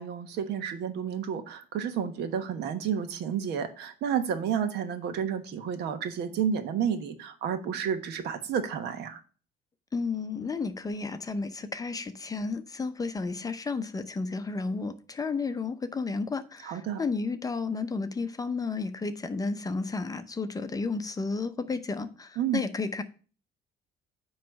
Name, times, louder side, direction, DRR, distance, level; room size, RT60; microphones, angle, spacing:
voice 1, 0.0-9.2 16.6-17.0 22.4-22.6, right 8 dB, 80° right, 1.2 m, -31 dB
voice 2, 9.9-23.0, left 4 dB, 20° left, 0.7 m, -32 dB
9.3 x 3.2 x 6.3 m
cardioid pair, 110°, 17 cm